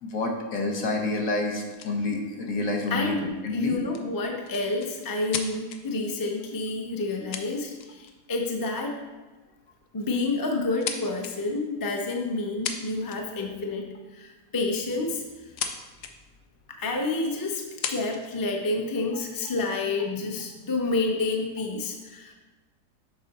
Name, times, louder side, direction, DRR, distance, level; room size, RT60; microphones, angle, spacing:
voice 1, 0.0-3.8, left 2 dB, 60° left, 2 dB, 1.3 m, -28 dB
sound 1, 1.7-1.9 3.9-5.8 6.9-7.0 7.3-8.1 8.5-8.7 9.7-9.9 10.3-11.3 12.4-12.5 12.6-13.4 14.9-15.7 16.0-16.1 16.8-16.9 17.6-18.3 19.0-19.7, left 8 dB, 80° left, 1.2 m, -35 dB
voice 2, 3.5-9.0 9.9-15.2 16.7-17.6 17.9-22.3, left 3 dB, 35° left, 2 dB, 0.3 m, -29 dB
6.6 x 5.4 x 4.2 m, 1.3 s
omnidirectional pair, 1.7 m